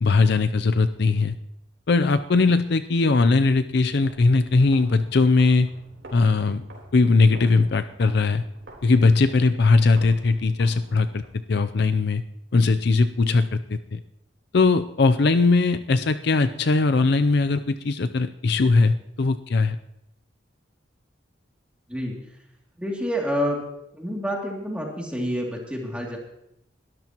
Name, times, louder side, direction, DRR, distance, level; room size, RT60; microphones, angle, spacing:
voice 1, 0.0-1.3 1.9-5.7 6.1-6.6 6.9-8.4 8.8-11.2 11.5-12.2 12.5-14.0 14.5-19.8, left 3 dB, 60° left, 10 dB, 0.5 m, -20 dB
sound 1, 4.0-11.3, right 1 dB, 80° right, 3.9 m, -47 dB
voice 2, 22.8-23.6 23.9-26.2, equal, 5° right, -1 dB, 2.6 m, -28 dB
21.0 x 13.0 x 3.0 m, 0.79 s
head